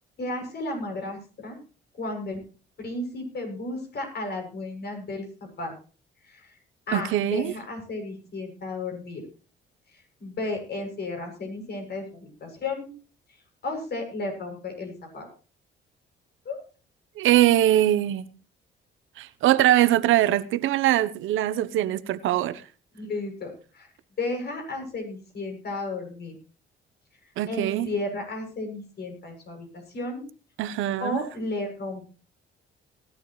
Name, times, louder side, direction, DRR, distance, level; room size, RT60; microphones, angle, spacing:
voice 1, 0.2-1.6 2.0-2.4 2.8-5.7 6.2-6.6 6.9-9.3 9.9-12.9 13.6-15.3 16.5-16.6 22.9-23.9 24.2-26.3 27.5-30.3 31.0-32.1, left 2 dB, 55° left, 7.1 m, -33 dB
voice 2, 6.9-7.5 17.2-18.3 19.2-22.6 27.4-27.9 30.6-31.2, right 13 dB, 85° right, 0.9 m, -22 dB
18.5 x 12.5 x 3.1 m
cardioid pair, 90°, 20 cm